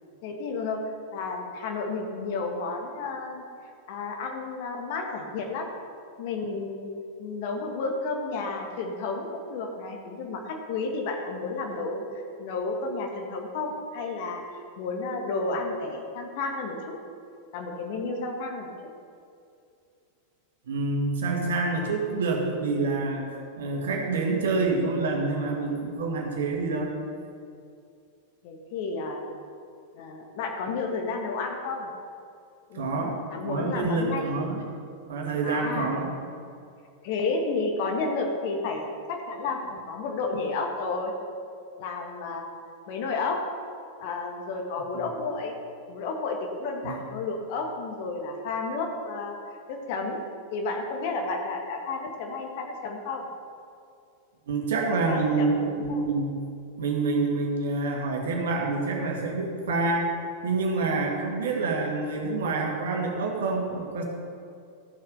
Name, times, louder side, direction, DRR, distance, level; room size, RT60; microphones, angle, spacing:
voice 1, 0.2-0.8 1.1-3.4 3.9-5.7 6.2-6.9 7.2-12.0 12.4-17.0 17.5-18.7 28.4-29.3 30.0-31.9 32.7-34.3 35.4-36.0 37.0-41.1 41.8-42.5 42.9-43.4 44.0-45.5 45.9-49.4 49.7-50.2 50.5-53.2 55.1-56.0, left 3 dB, 50° left, 2 dB, 1.7 m, -31 dB
voice 2, 20.7-23.3 23.6-26.9 32.7-34.6 35.1-36.1 46.8-47.0 54.5-56.4 56.8-60.1 60.4-64.0, right 3 dB, 60° right, 0 dB, 2.0 m, -27 dB
13.5 x 7.4 x 5.5 m, 2.4 s
figure-of-eight pair, 90°, 0 cm